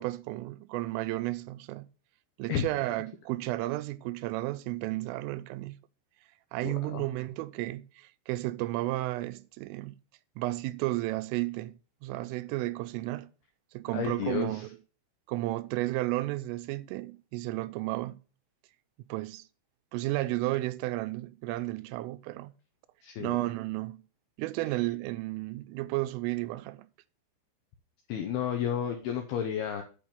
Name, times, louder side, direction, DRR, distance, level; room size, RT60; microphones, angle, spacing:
voice 1, 0.0-1.9 2.4-5.8 6.5-10.0 10.4-13.3 13.7-14.7 15.3-18.2 19.1-19.5 19.9-22.5 23.2-24.0 24.4-26.9, right 18 dB, 85° right, 3.2 m, -33 dB
voice 2, 6.6-7.0 13.9-14.7 23.0-23.4 28.1-29.8, left 9 dB, 80° left, 2.2 m, -32 dB
8.7 x 5.7 x 6.9 m
omnidirectional pair, 5.7 m